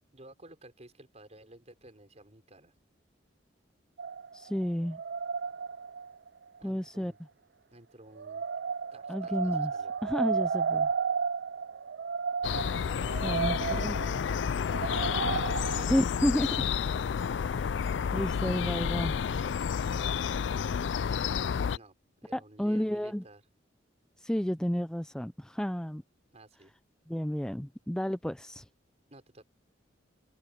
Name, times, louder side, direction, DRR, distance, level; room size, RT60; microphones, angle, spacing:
voice 1, 0.1-2.7 6.6-7.2 7.7-8.5 8.9-9.9 13.2-16.0 20.9-22.0 22.2-23.4 26.3-26.7 29.1-29.4, right 1 dB, 35° right, 5.4 m, -54 dB
sound 1, 4.0-6.3 8.2-15.9, right 5 dB, 60° right, 0.4 m, -33 dB
voice 2, 4.3-5.0 6.6-7.1 9.1-9.7 10.0-10.9 13.2-13.6 13.8-14.0 15.9-16.5 17.5-17.7 18.1-19.2 22.3-23.2 24.2-26.0 27.1-28.6, equal, 5° left, 0.5 m, -31 dB
sound 2, 12.4-21.8, left 7 dB, 70° left, 0.4 m, -30 dB
head